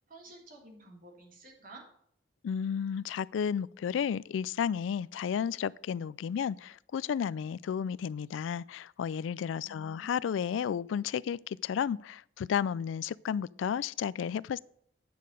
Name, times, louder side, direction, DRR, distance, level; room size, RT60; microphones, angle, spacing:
voice 1, 0.1-1.8 9.6-10.3, right 1 dB, 50° right, 3.0 m, -52 dB
voice 2, 2.4-14.6, left 7 dB, 90° left, 0.3 m, -32 dB
9.6 x 6.5 x 5.1 m
head